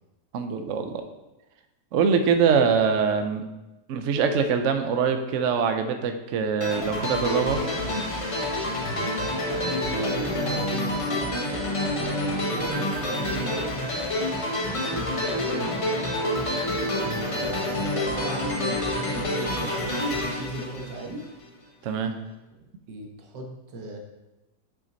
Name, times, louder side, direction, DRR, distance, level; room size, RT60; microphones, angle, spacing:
voice 1, 0.3-1.0 1.9-3.4 3.9-7.6 17.0-17.2 21.8-22.1, right 6 dB, 60° right, 7 dB, 0.8 m, -23 dB
sound 1, 6.6-21.4, left 1 dB, 35° left, 0.5 m, -28 dB
voice 2, 9.5-11.5 11.8-13.9 14.7-15.9 17.2-20.0 20.3-21.2 22.9-24.0, right 1 dB, 85° right, 2 dB, 1.8 m, -37 dB
7.5 x 6.0 x 4.0 m, 1.0 s
omnidirectional pair, 1.8 m